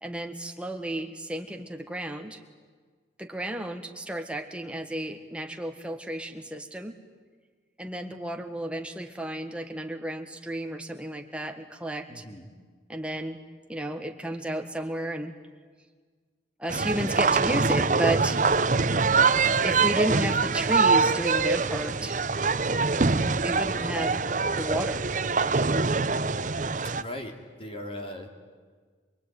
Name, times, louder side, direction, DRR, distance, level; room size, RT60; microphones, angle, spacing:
voice 1, 0.0-2.4 3.2-6.9 7.8-12.2 12.9-13.4 13.7-15.3 16.6-18.4 19.6-22.2 23.4-24.2 24.5-25.1, right 1 dB, 5° right, 5 dB, 1.6 m, -32 dB
voice 2, 12.1-12.5 17.0-17.2 18.4-18.7 27.0-28.3, left 1 dB, 30° left, 4 dB, 3.1 m, -39 dB
sound 1, 16.7-27.0, right 4 dB, 45° right, 0.8 m, -24 dB
27.0 x 21.5 x 9.5 m, 1.5 s
head